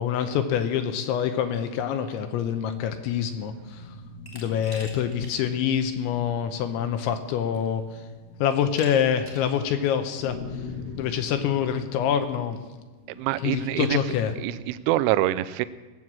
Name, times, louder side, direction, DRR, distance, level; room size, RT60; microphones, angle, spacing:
voice 1, 0.0-3.8 4.3-7.8 8.4-10.4 11.0-12.6 13.4-14.3, left 9 dB, 80° left, 7 dB, 2.9 m, -26 dB
sound 1, 2.7-14.7, left 3 dB, 55° left, 2.0 m, -44 dB
Glass, 4.2-5.3 5.7-5.8 7.0-7.1 7.5-7.9 8.7-9.5, left 1 dB, 15° left, 0.8 m, -44 dB
voice 2, 13.1-14.0 14.4-15.7, right 15 dB, 85° right, 14 dB, 2.9 m, -25 dB
18.5 x 7.8 x 7.4 m, 1.3 s
omnidirectional pair, 5.9 m